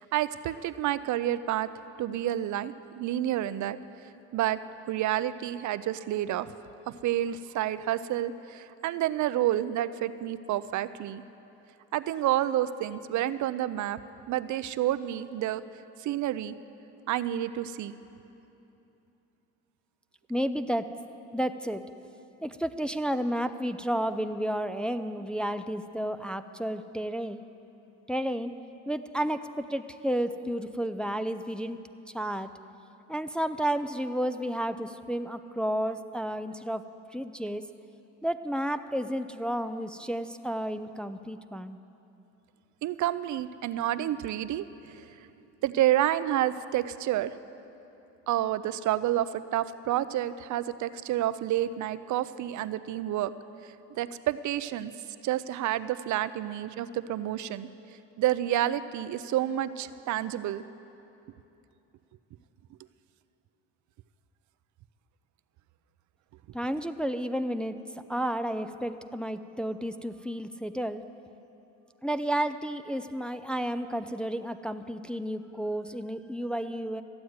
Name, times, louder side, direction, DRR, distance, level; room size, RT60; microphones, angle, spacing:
voice 1, 0.0-1.7 2.0-4.6 4.9-6.5 6.9-11.2 11.9-14.0 14.3-15.6 16.0-16.6 17.1-18.0 42.8-45.3 45.6-47.3 48.3-53.3 53.9-54.9 55.2-57.7 58.2-60.6 66.7-66.8, right 12 dB, 70° right, 14 dB, 0.5 m, -29 dB
voice 2, 20.3-20.9 21.3-21.8 22.4-27.4 28.1-28.5 28.9-31.8 32.1-32.5 33.1-36.8 37.1-37.6 38.2-41.8 66.5-67.8 68.1-71.0 72.0-77.0, right 1 dB, 5° left, 9 dB, 0.4 m, -31 dB
14.0 x 7.9 x 9.4 m, 2.9 s
cardioid pair, 90°, 30 cm